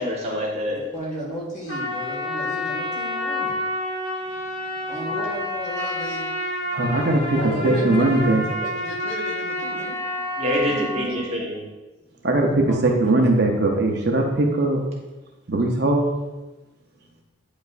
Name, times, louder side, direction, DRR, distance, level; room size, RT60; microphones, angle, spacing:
voice 1, 0.0-0.8 10.4-11.6, equal, 30° right, -4 dB, 1.3 m, -25 dB
voice 2, 0.7-3.6 4.9-6.3 7.1-10.0 10.6-11.2 12.7-13.2, right 1 dB, 35° left, -4 dB, 1.6 m, -33 dB
Trumpet, 1.7-11.2, left 1 dB, 55° left, 1.8 m, -29 dB
voice 3, 6.7-8.4 12.2-14.8 15.5-16.1, right 2 dB, 50° right, 1 dB, 0.7 m, -20 dB
9.2 x 5.1 x 2.5 m, 1.1 s
head